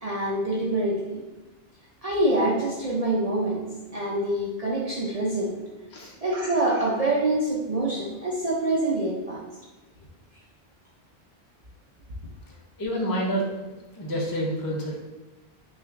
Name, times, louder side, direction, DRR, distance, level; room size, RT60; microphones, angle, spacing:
voice 1, 0.0-1.2 2.0-3.6 3.9-5.5 6.2-9.4, right 1 dB, 45° right, -5 dB, 0.6 m, -25 dB
voice 2, 12.8-13.5 14.0-15.0, equal, 25° left, -3 dB, 0.6 m, -28 dB
5.8 x 2.4 x 2.5 m, 1.1 s
omnidirectional pair, 1.1 m